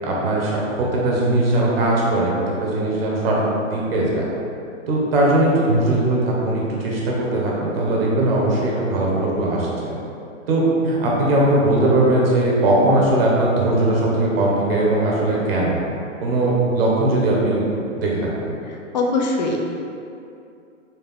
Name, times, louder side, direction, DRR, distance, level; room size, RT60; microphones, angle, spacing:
voice 1, 0.0-2.3 2.6-3.4 3.7-4.3 4.9-9.9 10.5-15.8 16.2-17.6 17.9-18.5, right 1 dB, 45° right, -4 dB, 1.1 m, -19 dB
voice 2, 18.9-19.6, left 3 dB, 35° left, 0 dB, 0.5 m, -21 dB
4.4 x 3.2 x 3.7 m, 2.6 s
hypercardioid pair, 150°, 39 cm